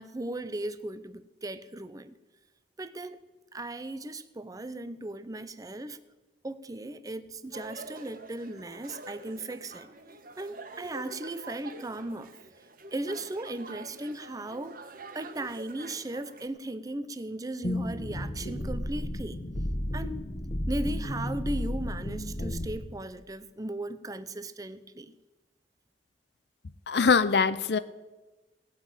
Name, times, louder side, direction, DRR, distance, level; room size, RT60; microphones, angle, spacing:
voice 1, 0.0-2.2 2.8-3.2 3.5-6.0 6.4-9.9 10.4-12.3 12.9-14.9 15.1-19.4 19.9-20.2 20.7-25.1, right 2 dB, 20° right, 0.6 m, -37 dB
sound 1, 7.5-16.5, right 2 dB, 50° right, 1.3 m, -46 dB
sound 2, 17.6-22.8, left 1 dB, 40° left, 1.2 m, -33 dB
voice 2, 26.9-27.8, left 5 dB, 65° left, 0.6 m, -23 dB
17.5 x 6.0 x 8.9 m
head